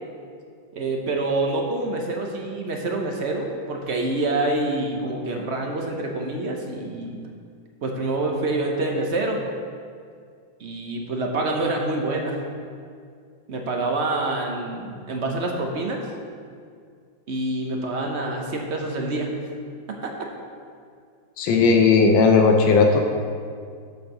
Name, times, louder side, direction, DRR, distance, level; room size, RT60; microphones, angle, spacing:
voice 1, 0.7-7.2 7.8-9.4 10.6-12.4 13.5-16.0 17.3-19.4 19.9-20.1, right 2 dB, 55° right, 1 dB, 0.8 m, -26 dB
voice 2, 21.4-23.0, left 4 dB, 85° left, 3 dB, 1.5 m, -16 dB
8.3 x 4.4 x 6.5 m, 2.2 s
omnidirectional pair, 2.0 m